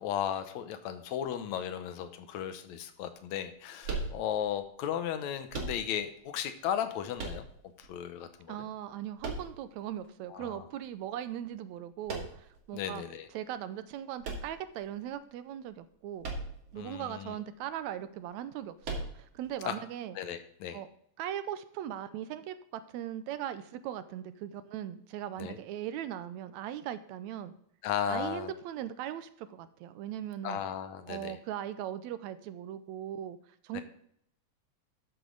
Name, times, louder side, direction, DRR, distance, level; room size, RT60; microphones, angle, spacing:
voice 1, 0.0-7.5 7.8-8.6 10.3-10.6 12.7-13.3 16.8-17.4 19.6-19.8 20.2-20.8 25.4-25.6 27.8-28.5 30.4-31.4 33.7-33.8, left 9 dB, 75° left, 10 dB, 2.1 m, -35 dB
sound 1, 3.8-4.6 5.5-6.2 7.2-7.9 9.2-10.0 12.1-12.6 14.2-15.1 16.2-16.8 17.1-17.2 18.8-19.5, right 3 dB, 60° right, 2.8 m, -38 dB
voice 2, 8.5-13.0 13.3-16.3 16.7-20.2 20.7-20.9 21.2-27.5 28.1-30.6 31.1-33.8, right 11 dB, 85° right, 12 dB, 1.9 m, -39 dB
13.0 x 7.1 x 3.8 m, 0.69 s
omnidirectional pair, 3.3 m